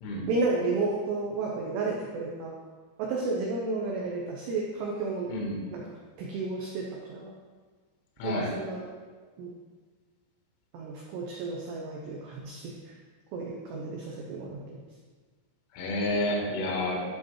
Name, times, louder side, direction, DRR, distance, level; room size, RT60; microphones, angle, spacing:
voice 1, 0.3-2.5 3.0-5.3 5.7-5.8 6.2-7.3 8.2-8.8 9.4-9.5 10.7-13.0 13.3-14.8, right 3 dB, 85° right, -2 dB, 2.4 m, -32 dB
voice 2, 5.2-5.6 8.2-8.5 15.7-17.0, left 1 dB, 75° left, -1 dB, 3.8 m, -29 dB
13.0 x 4.9 x 3.1 m, 1.5 s
omnidirectional pair, 5.9 m